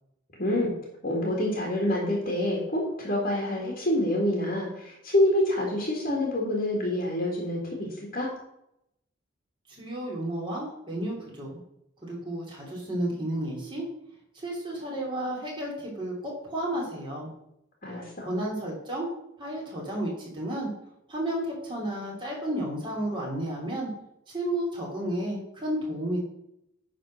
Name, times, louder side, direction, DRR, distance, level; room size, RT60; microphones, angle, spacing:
voice 1, 0.4-0.7 1.0-8.3 17.8-18.3, left 1 dB, 45° left, -2 dB, 2.0 m, -27 dB
voice 2, 9.7-11.6 12.0-13.9 14.3-17.3 18.2-19.1 19.4-20.7 21.1-23.9 24.3-26.2, right 1 dB, 25° right, -3 dB, 3.1 m, -32 dB
9.9 x 4.2 x 6.4 m, 0.79 s
head